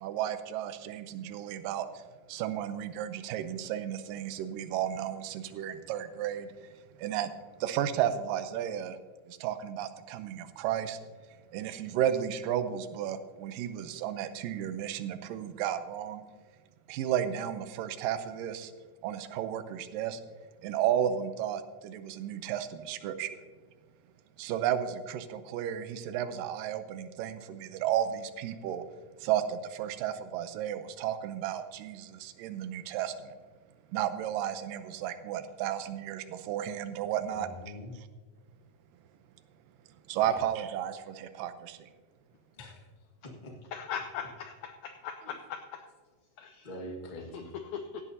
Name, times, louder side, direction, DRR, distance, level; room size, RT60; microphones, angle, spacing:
voice 1, 0.0-2.0 2.3-6.7 7.0-7.3 7.6-9.0 9.3-11.0 11.5-16.2 16.9-18.7 19.0-20.2 20.6-23.3 24.4-28.9 29.2-33.3 33.9-37.5 40.1-41.9, right 10 dB, 80° right, 10 dB, 2.3 m, -33 dB
voice 2, 37.3-37.9 40.2-40.4 42.6-42.9 43.4-43.5 45.2-45.3 46.6-47.5, equal, 55° left, 0 dB, 0.5 m, -44 dB
voice 3, 43.7-45.9 46.4-46.7 47.3-48.0, left 7 dB, 80° left, 6 dB, 1.6 m, -40 dB
16.5 x 11.0 x 2.8 m, 1.4 s
omnidirectional pair, 4.0 m